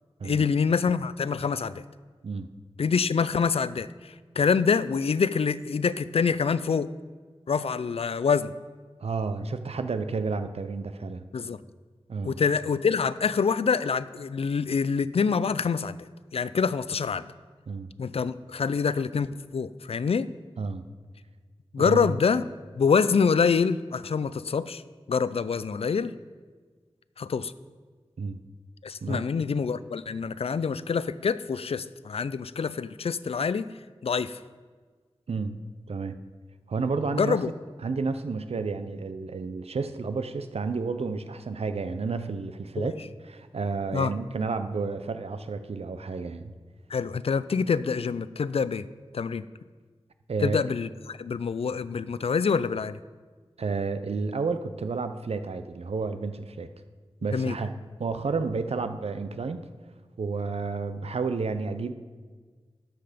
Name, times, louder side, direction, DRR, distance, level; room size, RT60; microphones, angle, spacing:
voice 1, 0.2-1.8 2.8-6.9 7.5-8.5 11.3-11.6 12.2-16.1 16.3-17.3 18.0-20.3 21.7-22.4 22.7-24.8 25.1-26.1 27.2-27.5 28.8-33.7 34.0-34.4 37.2-37.5 42.8-42.9 43.9-44.1 46.9-48.8 49.1-49.4 50.4-53.0 57.3-57.5, left 5 dB, 75° left, 16 dB, 0.4 m, -26 dB
voice 2, 9.0-11.2 12.1-12.3 17.7-17.9 20.6-20.8 21.8-22.1 28.2-28.4 29.0-29.3 35.3-35.6 35.9-36.2 36.7-37.4 37.8-46.6 50.3-50.6 53.6-56.7 57.2-59.7 60.2-61.9, right 4 dB, 80° right, 10 dB, 0.6 m, -31 dB
12.5 x 5.7 x 5.1 m, 1.5 s
wide cardioid pair, 50°, 10 cm